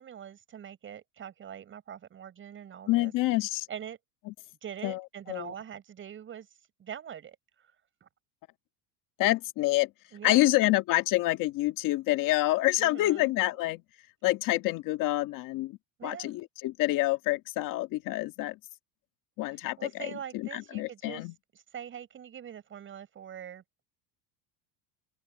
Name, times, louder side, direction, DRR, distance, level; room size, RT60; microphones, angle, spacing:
voice 1, 0.0-3.1 3.7-4.0 4.6-6.5 6.8-7.4 8.0-8.1 10.1-10.6 12.8-13.6 16.0-16.3 19.8-21.3 21.5-23.6, right 9 dB, 30° right, 7.3 m, -43 dB
voice 2, 2.9-3.7 4.8-5.0 5.3-5.5 9.2-9.9 10.2-13.8 14.2-15.7 16.0-18.6 19.4-21.3, left 17 dB, 55° left, 1.9 m, -27 dB
open air
cardioid pair, 150°, 39 cm